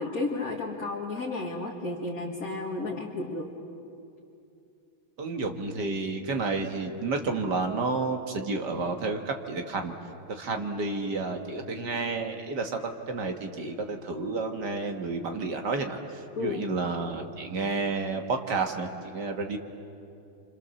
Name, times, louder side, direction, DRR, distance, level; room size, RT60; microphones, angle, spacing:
voice 1, 0.0-3.5 16.3-16.6 17.4-17.6, left 3 dB, 45° left, -2 dB, 2.1 m, -33 dB
voice 2, 5.2-10.0 10.3-19.6, right 3 dB, 55° right, 4 dB, 2.0 m, -31 dB
28.5 x 26.0 x 7.0 m, 2.7 s
omnidirectional pair, 2.3 m